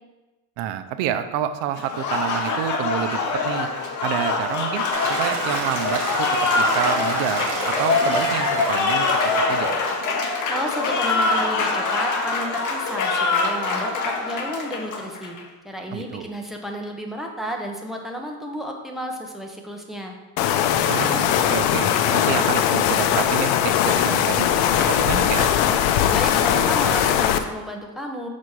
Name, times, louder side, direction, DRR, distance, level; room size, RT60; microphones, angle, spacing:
voice 1, 0.6-3.7 4.0-4.8 5.1-6.3 6.6-9.7 15.9-16.3 20.9-24.5 24.8-25.5, right 10 dB, 70° right, 10 dB, 0.6 m, -28 dB
Applause, 1.8-15.4, left 3 dB, 40° left, 1.0 m, -24 dB
sound 1, 4.9-10.0, right 4 dB, 85° right, 1.5 m, -31 dB
voice 2, 10.1-15.4 15.6-20.1 26.1-28.3, equal, ahead, 1 dB, 0.6 m, -32 dB
sound 2, 20.4-27.4, left 10 dB, 80° left, 0.7 m, -20 dB
6.2 x 4.3 x 4.7 m, 1.1 s
cardioid pair, 135°, 46 cm